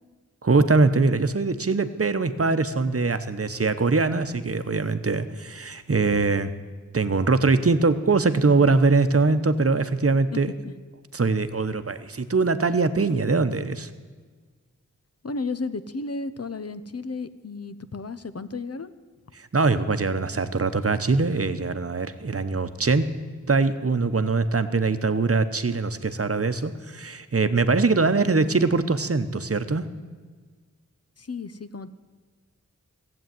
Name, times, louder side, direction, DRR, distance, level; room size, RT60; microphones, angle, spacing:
voice 1, 0.4-6.5 6.9-10.5 11.1-13.9 19.3-23.1 23.5-29.8, right 3 dB, 50° right, 11 dB, 0.9 m, -22 dB
voice 2, 10.3-10.7 15.2-18.9 31.2-31.9, left 3 dB, 55° left, 13 dB, 0.7 m, -33 dB
15.5 x 7.9 x 9.3 m, 1.5 s
wide cardioid pair, 50°, 30 cm